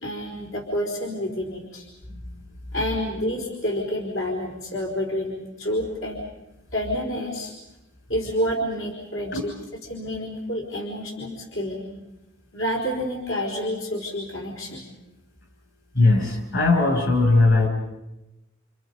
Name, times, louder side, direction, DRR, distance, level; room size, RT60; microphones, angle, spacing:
voice 1, 0.0-1.9 2.7-6.2 6.7-7.5 8.1-9.5 9.9-11.8 12.5-14.8, equal, 90° left, -2 dB, 4.5 m, -28 dB
voice 2, 15.9-17.7, left 3 dB, 65° left, 2 dB, 7.1 m, -19 dB
29.0 x 29.0 x 5.4 m, 0.97 s
head